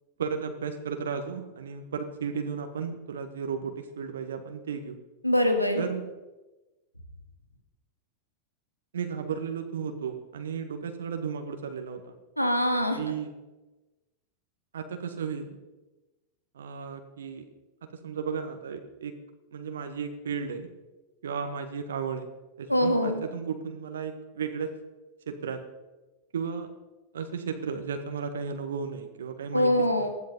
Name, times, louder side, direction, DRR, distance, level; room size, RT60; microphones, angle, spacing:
voice 1, 0.2-5.0 5.8-6.1 8.9-12.1 13.0-13.3 14.7-15.6 16.5-17.4 17.9-19.1 19.5-20.7 21.2-22.3 22.6-24.7 25.3-25.6 26.3-26.7 27.1-30.1, right 6 dB, 65° right, 6 dB, 1.7 m, -34 dB
voice 2, 5.2-5.8 12.4-13.0 22.7-23.2 29.5-30.1, left 1 dB, 90° left, 6 dB, 2.1 m, -23 dB
19.5 x 13.0 x 5.4 m, 1.1 s
figure-of-eight pair, 90°, 0 cm